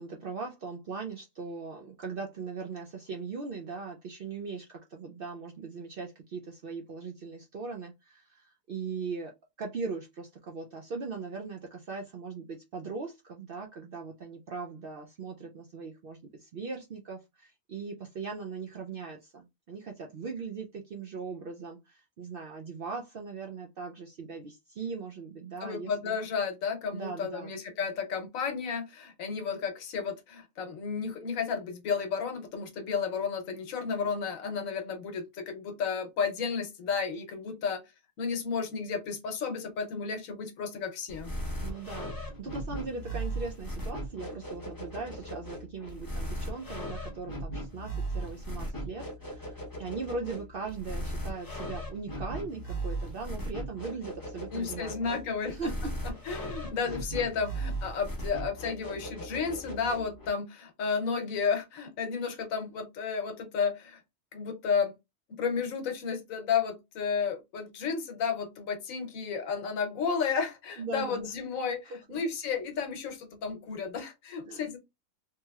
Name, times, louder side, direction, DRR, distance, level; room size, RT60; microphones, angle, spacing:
voice 1, 0.0-9.3 9.6-26.2 26.9-27.5 41.6-55.2 55.5-55.9 56.8-57.0 70.8-71.3 71.9-72.2 74.5-74.7, right 4 dB, 65° right, 0.5 m, -39 dB
voice 2, 25.6-37.8 38.2-41.3 54.5-55.7 56.3-64.0 64.3-65.0 65.4-74.8, left 6 dB, 75° left, 1.2 m, -32 dB
sound 1, 41.1-60.3, right 1 dB, 20° left, 0.7 m, -38 dB
3.1 x 2.8 x 2.3 m
omnidirectional pair, 1.4 m